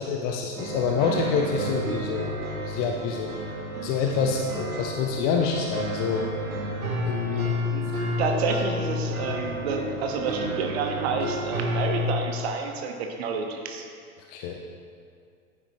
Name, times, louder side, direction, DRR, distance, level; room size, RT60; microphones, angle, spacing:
voice 1, 0.0-3.3 3.8-6.2 7.0-7.6 14.3-14.6, left 5 dB, 20° left, 2 dB, 0.5 m, -27 dB
sound 1, 0.6-12.1, left 1 dB, 75° right, 1.7 m, -31 dB
voice 2, 8.2-13.9, right 4 dB, 45° right, 3 dB, 1.3 m, -29 dB
11.0 x 9.6 x 3.0 m, 2.3 s
figure-of-eight pair, 100°, 43 cm